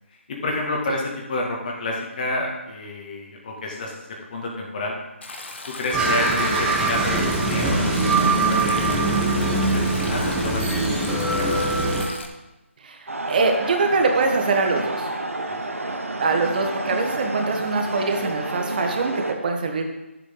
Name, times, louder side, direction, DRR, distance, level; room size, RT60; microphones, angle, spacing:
voice 1, 0.3-5.0 5.7-9.4 9.7-11.6 15.5-15.6, left 2 dB, 40° left, 0 dB, 2.2 m, -30 dB
Stream, 5.2-12.3, left 3 dB, 55° left, 1.4 m, -38 dB
sound 1, 5.9-12.0, right 2 dB, 5° right, 1.1 m, -22 dB
voice 2, 12.8-15.1 16.2-19.9, right 4 dB, 40° right, 4 dB, 1.4 m, -23 dB
sound 2, 13.1-19.4, right 2 dB, 85° right, 1.2 m, -30 dB
11.5 x 7.6 x 3.9 m, 0.99 s
figure-of-eight pair, 155°, 7 cm